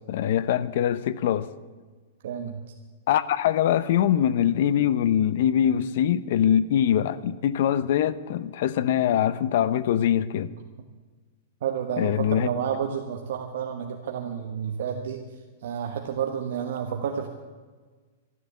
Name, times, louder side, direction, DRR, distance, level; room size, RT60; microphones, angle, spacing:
voice 1, 0.1-1.5 3.1-10.5 12.0-12.5, left 10 dB, 50° left, 0.7 m, -23 dB
voice 2, 2.2-2.6 11.6-15.2 15.6-17.3, right 8 dB, 60° right, 1.3 m, -30 dB
12.5 x 12.5 x 8.3 m
supercardioid pair, 170°, 0 cm